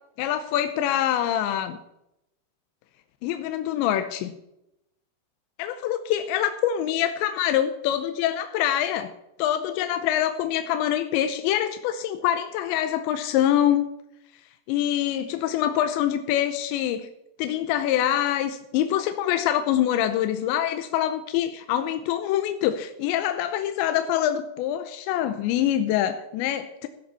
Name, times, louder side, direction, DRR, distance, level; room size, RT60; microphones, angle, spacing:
voice 1, 0.2-1.8 3.2-4.3 5.6-9.1 9.4-13.9 14.7-17.1 17.4-26.9, left 11 dB, 80° left, 8 dB, 2.8 m, -25 dB
15.5 x 11.0 x 4.1 m, 0.85 s
omnidirectional pair, 5.5 m